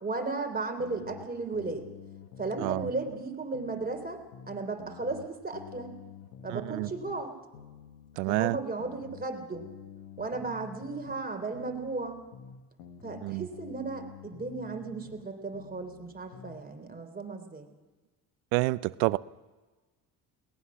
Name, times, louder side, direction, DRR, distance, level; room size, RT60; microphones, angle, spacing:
voice 1, 0.0-1.9 2.4-6.0 6.4-7.3 8.3-9.7 10.2-12.2 13.0-17.7, right 3 dB, 20° right, 5 dB, 3.5 m, -35 dB
sound 1, 0.8-3.3 3.5-7.3 7.5-11.3 11.5-15.3 15.5-16.6, left 7 dB, 85° left, 1.7 m, -49 dB
voice 2, 2.6-2.9 6.5-6.9 8.2-8.6 13.2-13.5 18.5-19.2, right 22 dB, 80° right, 19 dB, 0.6 m, -28 dB
22.0 x 19.5 x 6.3 m, 1.3 s
hypercardioid pair, 65°, 43 cm